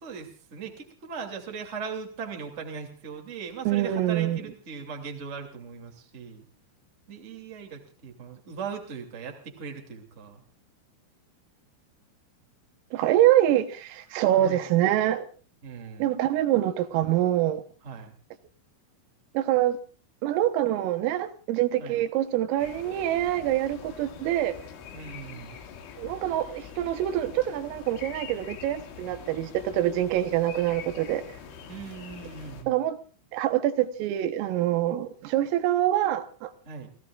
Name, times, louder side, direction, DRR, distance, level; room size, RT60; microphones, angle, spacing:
voice 1, 0.0-6.4 7.1-10.4 14.3-14.6 15.6-16.2 17.8-18.1 21.8-22.0 24.9-25.6 31.7-32.8 36.7-36.9, right 6 dB, 20° right, 1.9 m, -39 dB
voice 2, 3.7-4.4 12.9-15.3 16.0-17.6 19.4-19.8 20.2-24.6 26.0-31.2 32.7-33.0 33.3-36.5, right 13 dB, 85° right, 3.8 m, -25 dB
sound 1, 22.6-32.6, left 7 dB, 70° left, 4.4 m, -44 dB
30.0 x 17.0 x 2.5 m
omnidirectional pair, 5.8 m